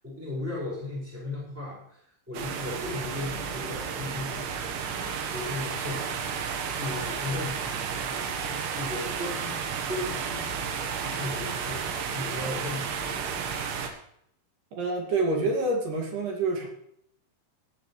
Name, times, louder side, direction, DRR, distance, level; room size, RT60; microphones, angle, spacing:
voice 1, 0.0-4.7 5.0-6.4 6.7-7.6 8.4-10.7 11.2-13.4, left 2 dB, 5° right, -6 dB, 5.2 m, -36 dB
sound 1, 2.3-13.9, right 6 dB, 75° right, 3.6 m, -32 dB
voice 2, 14.8-16.7, right 2 dB, 50° right, 0 dB, 3.5 m, -27 dB
17.5 x 11.0 x 3.3 m, 0.72 s
omnidirectional pair, 5.7 m